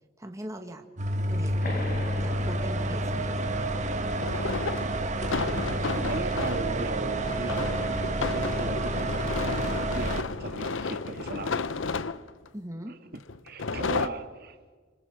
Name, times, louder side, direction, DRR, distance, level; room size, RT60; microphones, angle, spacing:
voice 1, 0.2-0.8 1.3-1.8 2.2-3.5 12.5-12.9, right 1 dB, 15° right, 4 dB, 1.6 m, -40 dB
sound 1, 1.0-10.2, right 1 dB, 40° right, 1.5 m, -29 dB
sound 2, 1.4-1.5 4.1-6.7 7.2-12.5 13.3-14.1, left 4 dB, 80° left, 0.8 m, -32 dB
sound 3, 1.6-6.8, left 2 dB, 50° left, 4.3 m, -43 dB
voice 2, 5.9-7.9 8.3-9.2 9.9-11.8 12.9-13.0 13.4-14.6, right 2 dB, 55° right, 6 dB, 1.8 m, -37 dB
26.5 x 26.0 x 4.8 m, 1.5 s
head